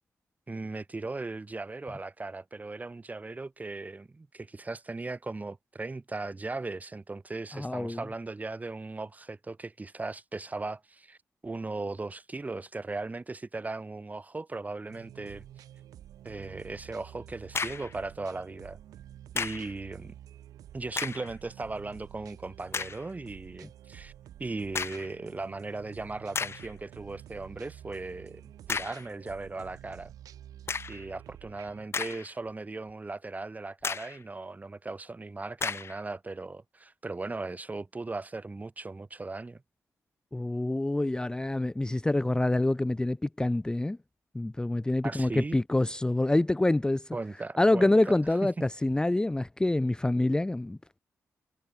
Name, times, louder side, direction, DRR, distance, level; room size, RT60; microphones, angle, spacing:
voice 1, 0.5-11.2 11.4-15.4 16.2-18.8 19.3-20.1 20.7-24.1 24.4-30.1 30.9-39.6 45.0-45.6 47.1-48.1 48.4-48.5, right 3 dB, 25° right, 2.3 m, -38 dB
voice 2, 7.5-8.0 40.3-44.0 44.3-47.2 47.6-51.0, left 2 dB, 15° left, 0.7 m, -26 dB
sound 1, 14.9-31.9, right 11 dB, 90° right, 1.9 m, -50 dB
sound 2, 17.3-18.0 19.4-19.7 20.9-21.3 21.9-22.0 22.7-23.0 24.7-25.1 25.8-25.9 26.3-26.7 28.7-29.1 30.7-31.0 31.7-32.5 32.9-33.0 33.8-34.2 35.6-36.0, left 5 dB, 45° left, 0.8 m, -34 dB
cardioid pair, 70°, 6 cm